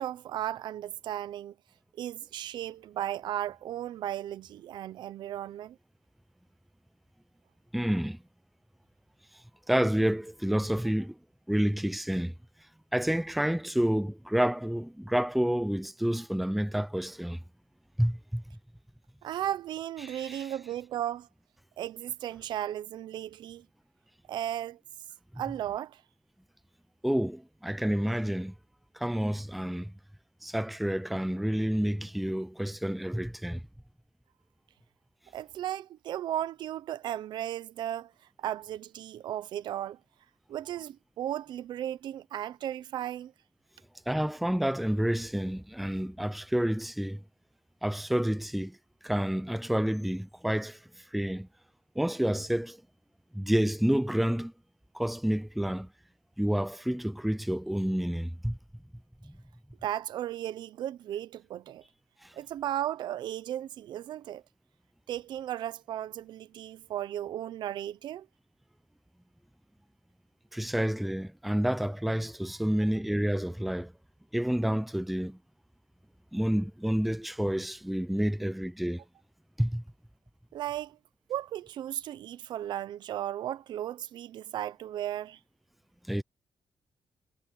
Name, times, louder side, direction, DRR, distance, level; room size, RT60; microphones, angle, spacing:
voice 1, 0.0-1.5 2.0-5.8 19.2-21.3 21.8-23.6 24.3-24.8 25.4-26.0 35.3-38.1 38.4-40.0 40.5-43.3 59.8-61.8 62.3-64.4 65.1-68.3 80.5-81.0 81.3-85.4, right 12 dB, 85° right, 0.7 m, -35 dB
voice 2, 7.7-8.2 9.7-11.2 11.5-12.3 12.9-17.4 18.0-18.4 20.0-20.5 27.0-28.5 28.9-29.9 30.4-33.6 44.1-47.2 47.8-48.8 49.0-51.5 52.0-52.8 53.3-54.5 54.9-55.9 56.4-58.6 59.2-59.4 62.2-62.3 70.5-73.9 74.3-75.4 76.3-79.0 79.6-79.8 86.1-86.2, equal, ahead, 0.5 m, -29 dB
wide cardioid pair, 175°, 8 cm